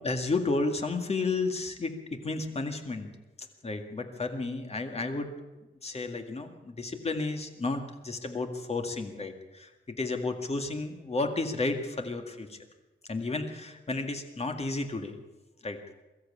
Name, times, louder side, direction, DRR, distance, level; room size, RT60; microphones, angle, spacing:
voice 1, 0.0-3.1 3.6-5.3 5.8-12.6 13.1-15.2 15.6-15.8, left 3 dB, 35° left, 5 dB, 2.0 m, -32 dB
22.5 x 13.5 x 8.6 m, 1.1 s
wide cardioid pair, 150°, 19 cm